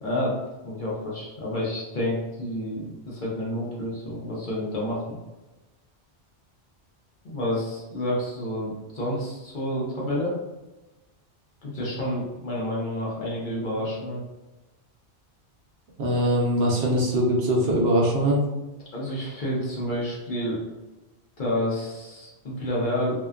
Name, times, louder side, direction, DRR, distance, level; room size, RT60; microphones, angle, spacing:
voice 1, 0.0-0.4 0.6-5.2 7.2-10.3 11.6-14.2 18.9-20.6 21.4-23.2, left 1 dB, 50° left, -5 dB, 0.8 m, -29 dB
voice 2, 16.0-18.4, equal, 70° right, -2 dB, 0.8 m, -22 dB
2.7 x 2.2 x 2.3 m, 1.1 s
omnidirectional pair, 1.1 m